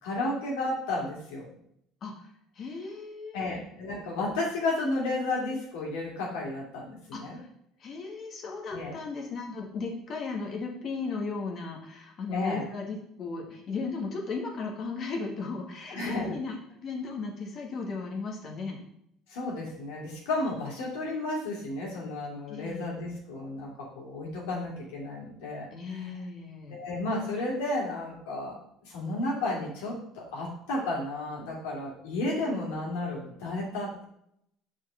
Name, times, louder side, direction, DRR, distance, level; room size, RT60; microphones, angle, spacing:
voice 1, 0.0-1.5 3.3-7.4 8.7-9.0 12.3-12.7 15.9-16.4 19.3-26.1 26.7-28.5 28.8-34.0, left 2 dB, 85° left, -3 dB, 2.6 m, -32 dB
voice 2, 2.0-3.6 7.1-7.5 7.8-18.8 22.5-23.0 25.7-26.8, left 4 dB, 50° left, 1 dB, 1.9 m, -36 dB
5.9 x 4.6 x 5.7 m, 0.73 s
supercardioid pair, 90°, 0 cm